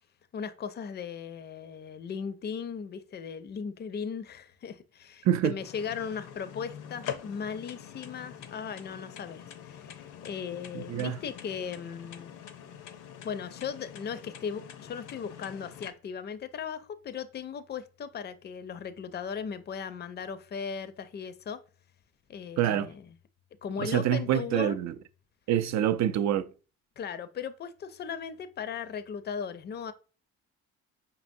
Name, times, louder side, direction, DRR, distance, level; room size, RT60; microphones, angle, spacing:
voice 1, 0.3-12.3 13.2-21.6 22.3-23.0 23.6-24.8 27.0-29.9, left 7 dB, 35° left, 0.4 m, -37 dB
voice 2, 5.2-5.5 10.7-11.2 22.6-22.9 23.8-24.9 25.5-26.5, right 11 dB, 65° right, 0.4 m, -26 dB
sound 1, 5.6-15.9, left 9 dB, 80° left, 0.6 m, -44 dB
5.3 x 2.8 x 2.6 m
cardioid pair, 90°, 30 cm